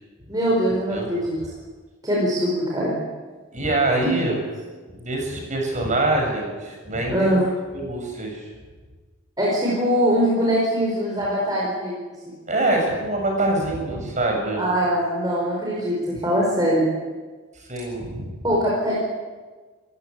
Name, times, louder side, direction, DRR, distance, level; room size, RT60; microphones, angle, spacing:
voice 1, 0.3-1.4 2.0-3.0 4.0-4.1 7.1-7.5 9.4-12.0 12.3-12.4 14.6-16.9 18.4-19.0, equal, 15° right, -4 dB, 4.9 m, -22 dB
voice 2, 3.5-4.4 4.9-7.3 7.7-8.5 12.5-14.6 17.7-18.3, right 2 dB, 35° right, 1 dB, 7.0 m, -24 dB
27.5 x 15.5 x 8.4 m, 1.4 s
head